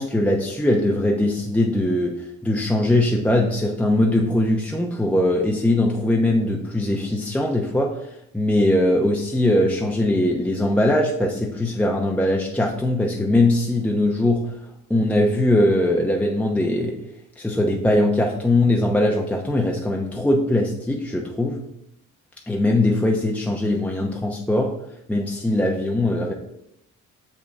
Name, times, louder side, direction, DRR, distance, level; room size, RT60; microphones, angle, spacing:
voice 1, 0.0-8.1 8.3-14.5 14.9-17.0 17.4-21.6 22.5-24.7 25.1-26.3, left 1 dB, 5° left, 0 dB, 0.8 m, -21 dB
6.5 x 5.5 x 3.5 m, 0.78 s
cardioid pair, 90°, 30 cm